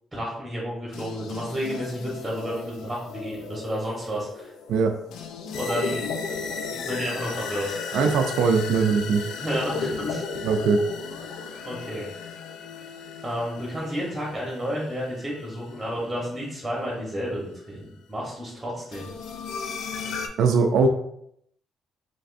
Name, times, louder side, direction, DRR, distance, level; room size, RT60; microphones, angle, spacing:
voice 1, 0.1-4.5 5.5-6.5 6.7-8.0 9.4-10.2 11.6-12.1 13.2-19.1, equal, 10° right, -4 dB, 1.0 m, -31 dB
sound 1, 0.9-17.0 18.9-20.3, left 5 dB, 85° left, 0.4 m, -35 dB
voice 2, 7.9-9.2 10.4-10.8 20.4-20.9, right 5 dB, 80° right, 4 dB, 0.3 m, -20 dB
3.4 x 3.1 x 2.5 m, 0.73 s
cardioid pair, 90°, 0 cm